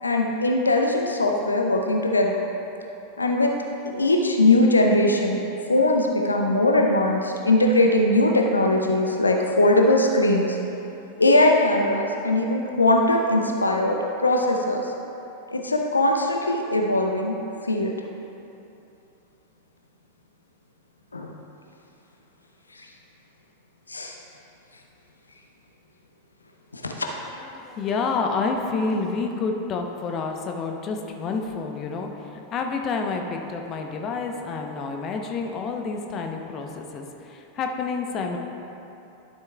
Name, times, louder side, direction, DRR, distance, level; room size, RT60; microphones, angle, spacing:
voice 1, 0.0-2.4 3.2-3.5 3.8-5.4 5.7-10.6 11.2-14.9 15.5-17.4 17.6-17.9 21.1-21.3 22.8-22.9 23.9-24.2 26.7-26.9, left 2 dB, 80° left, 1 dB, 0.6 m, -20 dB
voice 2, 27.4-38.4, left 4 dB, 30° left, 3 dB, 0.7 m, -29 dB
12.0 x 7.7 x 2.3 m, 2.9 s
figure-of-eight pair, 90°, 0 cm